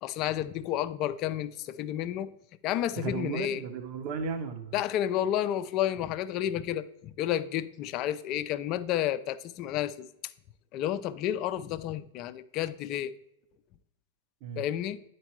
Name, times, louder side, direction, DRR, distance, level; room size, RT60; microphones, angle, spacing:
voice 1, 0.0-2.3 2.6-3.6 4.7-10.1 10.7-13.1 14.6-15.0, left 11 dB, 40° left, 0.4 m, -31 dB
voice 2, 3.0-4.7 14.4-14.6, right 5 dB, 45° right, 0.9 m, -35 dB
9.8 x 4.5 x 3.1 m
hypercardioid pair, 105°, 0 cm